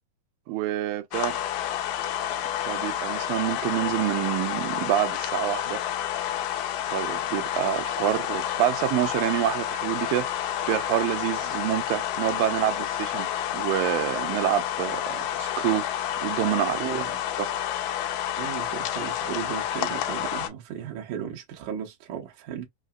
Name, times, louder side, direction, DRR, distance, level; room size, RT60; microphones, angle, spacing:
voice 1, 0.5-1.4 2.6-5.8 6.9-10.3 10.7-15.9 16.2-17.0, right 13 dB, 85° right, 2.4 m, -27 dB
sound 1, 1.1-20.5, left 11 dB, 80° left, 2.3 m, -29 dB
voice 2, 16.8-17.2 18.4-22.7, right 9 dB, 70° right, 2.2 m, -35 dB
5.6 x 2.1 x 2.3 m
omnidirectional pair, 4.0 m